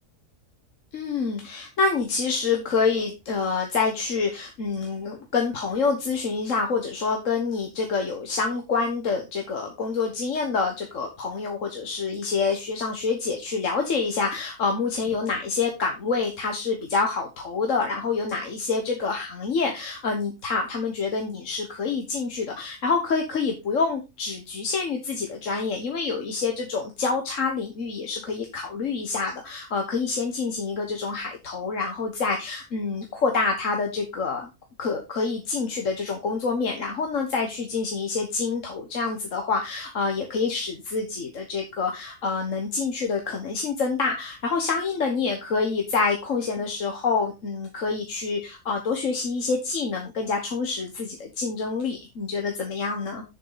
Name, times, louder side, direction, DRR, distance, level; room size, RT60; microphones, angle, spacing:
voice 1, 0.9-34.5 34.8-53.2, left 4 dB, 55° left, 2 dB, 1.6 m, -27 dB
7.4 x 6.8 x 4.0 m, 0.25 s
omnidirectional pair, 1.6 m